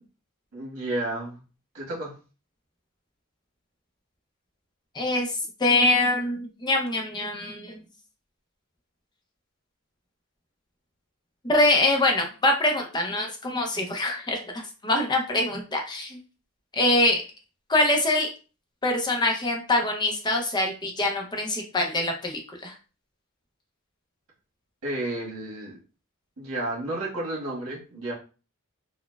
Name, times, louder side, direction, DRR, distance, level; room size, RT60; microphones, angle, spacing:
voice 1, 0.5-1.4 1.7-2.1 24.8-25.7 26.4-28.1, right 1 dB, 75° right, -3 dB, 1.4 m, -31 dB
voice 2, 4.9-7.8 11.4-16.2 16.7-17.2 17.7-18.3 18.8-22.7, left 2 dB, 20° left, 2 dB, 0.5 m, -24 dB
4.0 x 2.1 x 2.2 m, 0.34 s
head